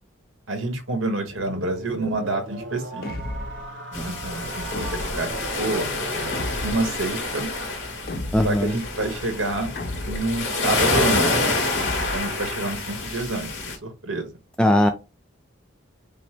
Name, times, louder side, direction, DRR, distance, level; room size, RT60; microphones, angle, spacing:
voice 1, 0.5-3.1 3.9-5.3 5.6-5.9 6.6-7.5 8.4-9.7 10.1-11.2 12.1-14.3, right 2 dB, 80° right, 6 dB, 1.3 m, -28 dB
sound 1, 1.3-7.2, right 2 dB, 60° right, 1.0 m, -38 dB
sound 2, 3.0-3.7 4.7-5.4 6.3-7.0 8.1-8.7 9.8-10.4 11.8-12.4, left 1 dB, 45° left, 0.6 m, -33 dB
sound 3, 3.9-13.8, left 2 dB, 70° left, 2.4 m, -27 dB
voice 2, 8.3-8.8 14.6-14.9, left 1 dB, 5° left, 5 dB, 0.3 m, -19 dB
5.5 x 2.1 x 4.3 m, 0.27 s
head